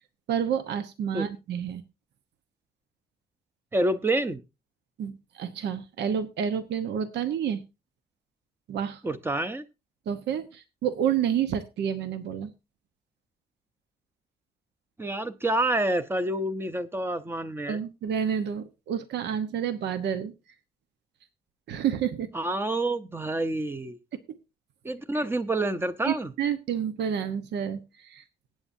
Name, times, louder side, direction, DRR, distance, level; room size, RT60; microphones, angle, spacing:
voice 1, 0.3-1.8 5.0-7.6 8.7-9.0 10.1-12.5 17.7-20.3 21.7-22.3 24.1-24.2 26.0-28.2, right 8 dB, 85° right, 11 dB, 1.0 m, -29 dB
voice 2, 3.7-4.4 9.0-9.6 15.0-17.8 22.3-24.0 24.8-26.3, right 1 dB, 15° right, 13 dB, 0.6 m, -28 dB
19.5 x 8.9 x 2.7 m, 0.26 s
cardioid pair, 180°, 17 cm